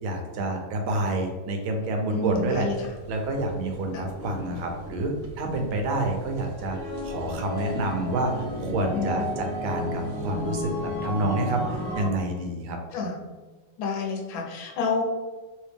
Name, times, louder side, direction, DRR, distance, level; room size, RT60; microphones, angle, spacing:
voice 1, 0.0-2.7 3.1-12.8, right 2 dB, 85° right, 3 dB, 1.6 m, -28 dB
voice 2, 2.1-2.9 3.9-4.0 8.9-9.3 12.9-13.2 13.8-15.0, left 4 dB, 80° left, 1 dB, 1.5 m, -29 dB
sound 1, 2.3-12.1, left 1 dB, 60° right, 0.9 m, -34 dB
3.5 x 3.1 x 3.3 m, 1.3 s
omnidirectional pair, 2.1 m